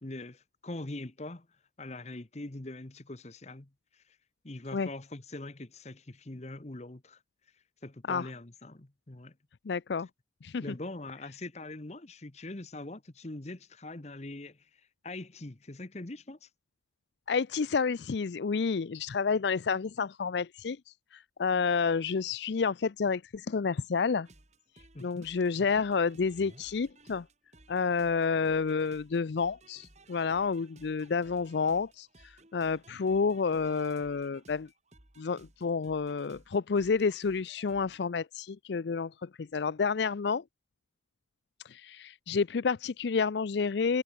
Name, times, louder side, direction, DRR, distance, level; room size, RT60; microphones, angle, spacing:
voice 1, 0.0-1.5 1.8-4.2 4.4-7.2 7.8-9.4 10.6-16.5 24.9-25.3, left 2 dB, 35° left, 1.1 m, -43 dB
voice 2, 9.7-10.1 10.4-10.7 17.3-24.3 25.0-27.3 27.7-34.7 35.2-40.4 41.6-44.0, left 5 dB, 65° left, 0.5 m, -30 dB
sound 1, 24.2-38.0, right 2 dB, 35° right, 5.6 m, -58 dB
head